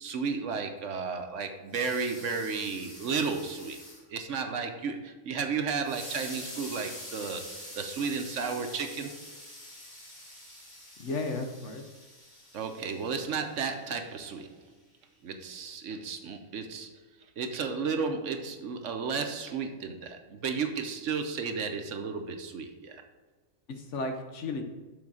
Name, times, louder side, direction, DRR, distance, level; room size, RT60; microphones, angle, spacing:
voice 1, 0.0-3.8 4.1-9.1 12.5-14.6 15.2-16.9 17.4-23.0, right 5 dB, 65° right, 6 dB, 1.1 m, -33 dB
sound 1, 1.7-4.0 5.8-14.2, left 1 dB, 50° left, 3.2 m, -46 dB
voice 2, 11.0-11.8 23.7-24.6, left 3 dB, 65° left, 5 dB, 1.1 m, -34 dB
7.2 x 4.3 x 6.1 m, 1.3 s
omnidirectional pair, 1.4 m